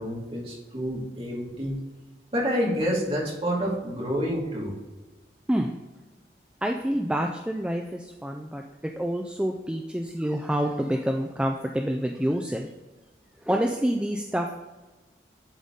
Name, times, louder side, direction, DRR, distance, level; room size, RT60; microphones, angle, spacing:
voice 1, 0.0-1.8 2.3-4.7, equal, 35° right, -3 dB, 2.2 m, -28 dB
voice 2, 6.6-8.6 9.0-12.7 13.4-14.5, equal, 5° right, 2 dB, 0.4 m, -27 dB
11.0 x 4.0 x 3.6 m, 1.2 s
head